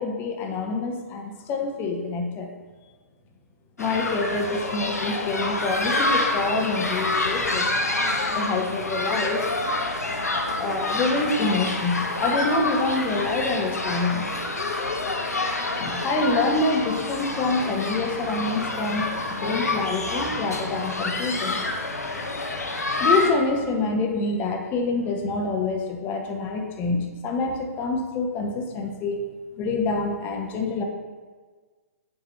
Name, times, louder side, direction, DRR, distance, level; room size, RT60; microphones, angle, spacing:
voice 1, 0.0-2.5 3.8-7.7 8.3-9.5 10.6-14.3 15.8-21.7 23.0-29.2 29.6-30.8, left 3 dB, 25° left, 2 dB, 0.7 m, -26 dB
sound 1, 3.8-23.3, left 2 dB, 80° left, 0.7 m, -27 dB
7.0 x 2.8 x 5.5 m, 1.5 s
figure-of-eight pair, 120°, 8 cm